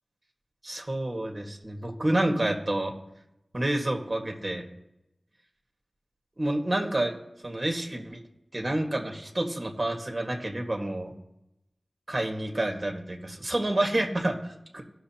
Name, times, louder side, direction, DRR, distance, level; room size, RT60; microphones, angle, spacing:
voice 1, 0.6-2.9 3.5-4.6 6.4-7.1 7.4-8.2 8.5-11.1 12.1-14.8, right 1 dB, 35° right, 2 dB, 1.6 m, -29 dB
18.0 x 6.5 x 2.9 m, 0.87 s
wide cardioid pair, 70°, 0 cm